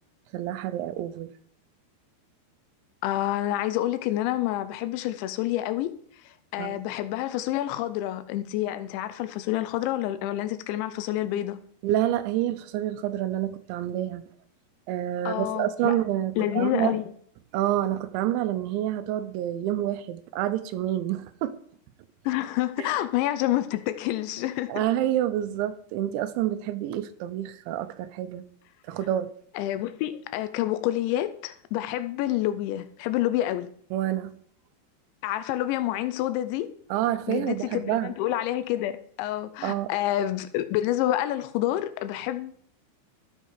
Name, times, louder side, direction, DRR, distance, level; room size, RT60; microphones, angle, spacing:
voice 1, 0.3-1.3 6.6-6.8 11.8-14.2 14.9-17.0 17.5-21.6 24.7-28.5 28.9-29.3 33.9-34.3 36.9-38.1 39.6-39.9, right 12 dB, 90° right, 3.0 m, -28 dB
voice 2, 3.0-6.0 6.3-11.6 15.3-15.9 16.4-17.0 22.3-24.8 29.6-33.7 35.2-36.7 37.3-42.5, left 14 dB, 90° left, 3.0 m, -28 dB
14.0 x 5.6 x 4.8 m
omnidirectional pair, 5.1 m